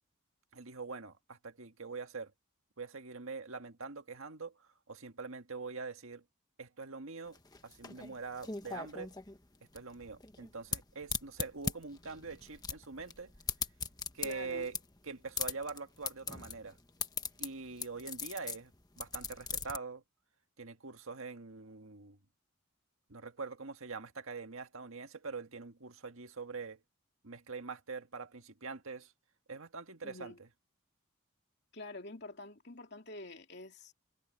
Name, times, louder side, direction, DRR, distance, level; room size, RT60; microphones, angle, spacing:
voice 1, 0.5-2.3 2.8-6.2 6.6-9.1 9.7-13.3 14.1-14.7 15.0-16.8 17.4-18.7 19.0-20.0 20.6-22.2 23.1-26.8 27.2-29.1 29.5-30.3, right 4 dB, 75° right, 1.7 m, -44 dB
sound 1, 7.3-19.8, left 5 dB, 20° left, 1.1 m, -40 dB
voice 2, 14.2-14.7 30.0-30.4 31.7-33.9, left 2 dB, 50° left, 2.9 m, -47 dB
head